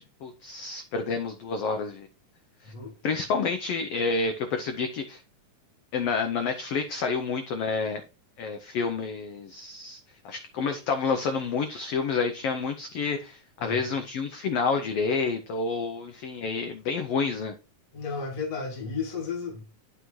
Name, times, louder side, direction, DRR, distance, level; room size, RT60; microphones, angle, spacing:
voice 1, 0.0-2.1 2.6-2.7 3.0-5.2 5.9-8.0 8.4-10.0 10.2-17.5, left 4 dB, 85° left, 1.3 m, -29 dB
voice 2, 17.9-19.6, left 5 dB, 45° left, 1.1 m, -33 dB
11.0 x 5.7 x 3.1 m
omnidirectional pair, 3.7 m